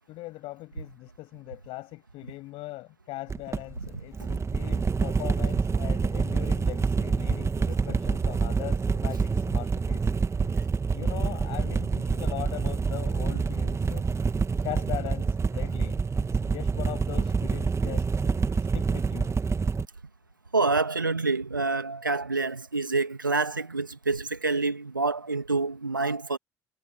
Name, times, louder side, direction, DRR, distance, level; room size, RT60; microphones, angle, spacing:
voice 1, 0.1-10.1 10.9-14.1 14.6-18.4 18.7-19.4, left 19 dB, 60° left, 6.9 m, -40 dB
sound 1, 3.3-19.9, right 5 dB, 25° right, 2.2 m, -27 dB
voice 2, 20.5-26.4, right 3 dB, 85° right, 2.4 m, -27 dB
figure-of-eight pair, 50°, 10 cm